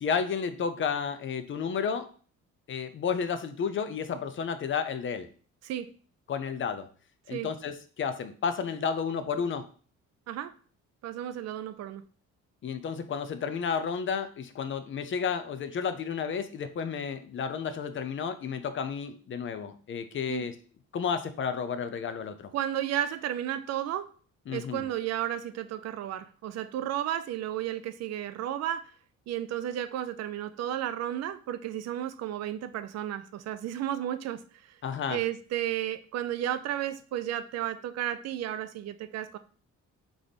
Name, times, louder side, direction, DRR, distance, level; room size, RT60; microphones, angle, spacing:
voice 1, 0.0-2.1 2.7-5.3 6.3-6.9 7.3-9.6 12.6-20.5 20.9-22.5 24.5-24.9 34.8-35.2, left 6 dB, 45° left, 10 dB, 0.5 m, -32 dB
voice 2, 11.0-12.0 20.3-20.5 22.5-24.1 24.5-28.9 29.3-34.4 35.1-39.4, right 11 dB, 60° right, 11 dB, 0.4 m, -33 dB
3.5 x 3.2 x 4.0 m, 0.42 s
cardioid pair, 95°, 29 cm